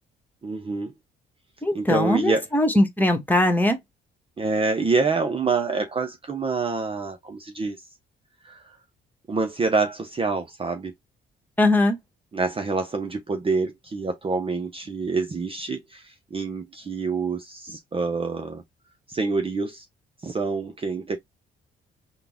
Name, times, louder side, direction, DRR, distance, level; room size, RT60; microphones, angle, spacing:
voice 1, 0.4-0.9 1.7-2.4 4.4-7.8 8.4-8.6 9.3-10.9 12.3-18.6 19.1-19.8 20.2-21.2, right 4 dB, 25° right, 0.7 m, -26 dB
voice 2, 1.6-3.8 11.6-12.0, left 1 dB, 10° left, 1.3 m, -20 dB
3.7 x 2.2 x 3.4 m
cardioid pair, 90°, 20 cm